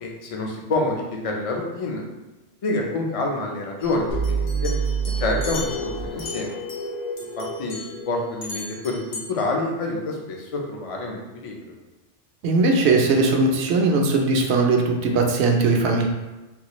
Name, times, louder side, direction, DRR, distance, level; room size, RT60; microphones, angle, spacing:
voice 1, 0.0-2.0 2.6-4.7 5.2-6.5 7.4-11.6, left 2 dB, 45° left, 0 dB, 0.4 m, -27 dB
sound 1, 3.8-6.9 7.2-8.0 8.4-9.3, left 3 dB, 65° left, 1.0 m, -38 dB
sound 2, 4.1-8.8, right 4 dB, 85° left, 1.7 m, -28 dB
voice 2, 12.4-16.1, right 3 dB, 70° right, 2 dB, 0.8 m, -19 dB
3.8 x 2.4 x 2.9 m, 1.1 s
omnidirectional pair, 1.2 m